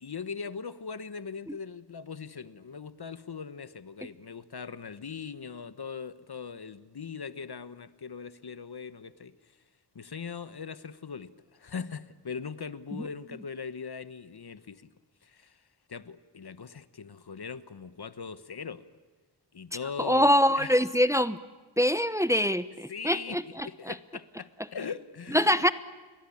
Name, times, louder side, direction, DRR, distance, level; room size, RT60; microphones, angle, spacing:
voice 1, 0.0-9.3 9.9-14.9 15.2-15.6 15.9-18.8 19.5-20.7 22.9-25.6, left 6 dB, 60° left, 1.2 m, -40 dB
voice 2, 20.0-21.4 21.8-24.0 25.3-25.7, equal, 5° right, 0.9 m, -24 dB
30.0 x 22.5 x 8.7 m
wide cardioid pair, 65°, 42 cm